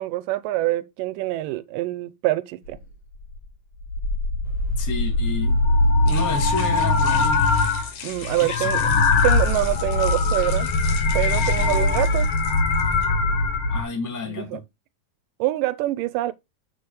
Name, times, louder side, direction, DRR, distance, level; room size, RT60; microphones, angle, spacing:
voice 1, 0.0-2.8 8.0-8.9 9.2-10.7 11.1-12.3 14.3-14.6 15.4-16.3, right 17 dB, 85° right, 2.2 m, -25 dB
sound 1, 2.7-2.8 3.2-3.4 3.8-7.9 8.2-13.8, left 3 dB, 60° left, 1.5 m, -21 dB
sound 2, 4.5-13.0, left 6 dB, 85° left, 3.5 m, -39 dB
voice 2, 4.8-5.6 6.0-7.5 8.4-9.0 13.7-14.6, left 3 dB, 10° left, 1.2 m, -30 dB
6.9 x 6.7 x 3.1 m
omnidirectional pair, 3.8 m